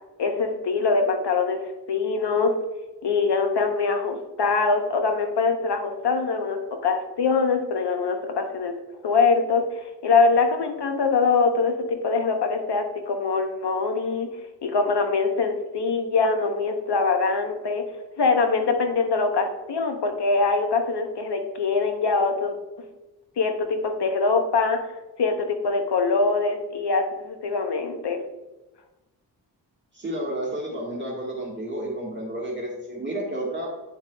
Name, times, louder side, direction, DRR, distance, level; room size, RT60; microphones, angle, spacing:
voice 1, 0.2-1.6 1.9-2.5 3.0-8.8 9.0-14.3 14.6-17.8 18.2-22.5 23.4-24.9 25.2-28.2, left 4 dB, 70° left, 5 dB, 0.9 m, -23 dB
voice 2, 29.9-33.7, right 1 dB, 25° right, -4 dB, 1.6 m, -31 dB
8.8 x 7.0 x 2.3 m, 1.0 s
cardioid pair, 80°, 42 cm